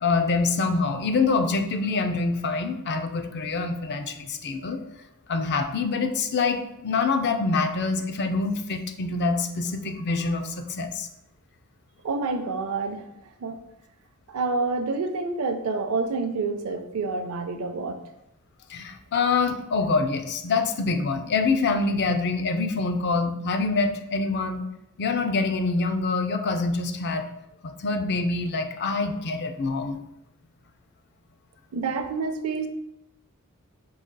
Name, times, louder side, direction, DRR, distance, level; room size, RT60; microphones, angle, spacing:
voice 1, 0.0-4.8 5.3-11.1 18.7-24.6 25.0-27.3 27.6-30.0, left 4 dB, 50° left, 7 dB, 0.4 m, -25 dB
voice 2, 12.0-13.1 13.4-13.6 14.3-18.0 31.7-32.7, right 4 dB, 90° right, 7 dB, 0.5 m, -28 dB
4.8 x 3.9 x 2.2 m, 0.85 s
head